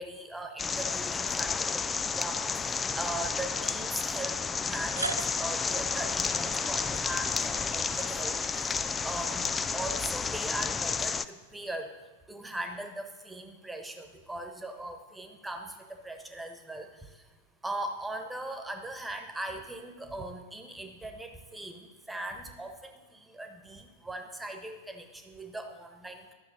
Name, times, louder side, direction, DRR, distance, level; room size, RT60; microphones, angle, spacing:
voice 1, 0.0-9.5 9.7-11.9 12.3-15.7 16.0-16.9 17.6-26.3, right 1 dB, 5° right, 5 dB, 1.3 m, -39 dB
sound 1, 0.6-11.2, left 5 dB, 15° left, 0.4 m, -31 dB
sound 2, 2.3-2.4 3.6-3.7 4.6-10.6, right 3 dB, 80° right, 0.4 m, -43 dB
12.0 x 6.7 x 6.9 m, 1.2 s
figure-of-eight pair, 90°, 0 cm